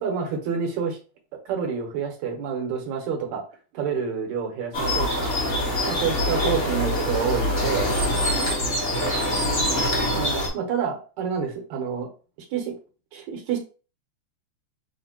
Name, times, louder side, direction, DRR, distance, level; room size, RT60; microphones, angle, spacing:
voice 1, 0.0-1.0 1.5-3.4 3.7-5.3 5.8-7.9 10.1-12.1 12.5-12.7 13.1-13.6, right 6 dB, 75° right, 2 dB, 2.2 m, -28 dB
sound 1, 4.7-10.5, left 1 dB, 50° left, 0.8 m, -24 dB
6.5 x 2.8 x 2.9 m, 0.36 s
omnidirectional pair, 3.4 m